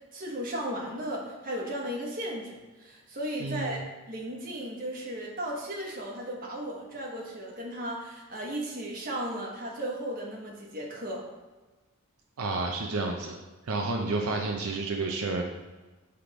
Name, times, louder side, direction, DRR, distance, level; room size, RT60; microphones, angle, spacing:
voice 1, 0.1-3.8 4.1-11.2, right 1 dB, 40° right, -3 dB, 1.3 m, -35 dB
voice 2, 3.4-3.9 12.4-13.4 13.6-15.4, right 3 dB, 75° right, 1 dB, 0.6 m, -30 dB
6.0 x 3.5 x 4.9 m, 1.2 s
head